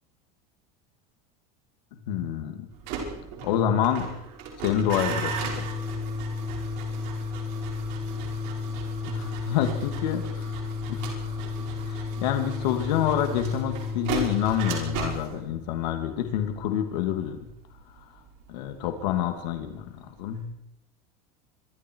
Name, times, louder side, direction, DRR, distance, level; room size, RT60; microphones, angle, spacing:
voice 1, 2.1-2.6 3.4-4.1 4.6-5.7 9.1-10.5 10.9-11.3 11.9-17.4 18.5-20.5, left 9 dB, 80° left, 5 dB, 2.7 m, -27 dB
sound 1, 2.7-19.7 20.0-20.4, right 6 dB, 50° right, 5.6 m, -38 dB
Organ, 4.8-15.1, left 4 dB, 15° right, 2.3 m, -33 dB
26.0 x 23.0 x 4.8 m, 0.80 s
cardioid pair, 180°, 21 cm